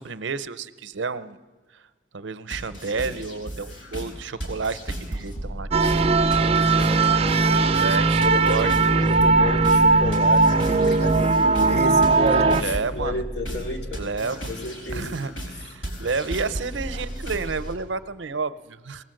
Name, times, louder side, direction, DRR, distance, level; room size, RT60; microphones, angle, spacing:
voice 1, 0.0-1.4 1.7-1.9 2.1-6.1 7.8-8.7 12.6-13.2 14.0-14.5 14.9-19.0, right 4 dB, 75° right, 13 dB, 0.7 m, -30 dB
sound 1, 2.5-17.7, right 1 dB, 80° left, 4.7 m, -35 dB
sound 2, 5.7-12.6, right 3 dB, 30° right, 0.5 m, -19 dB
voice 2, 6.7-8.0 8.2-15.2 15.5-15.6, left 2 dB, 60° left, 2 dB, 3.0 m, -31 dB
20.5 x 18.5 x 7.7 m, 1.4 s
head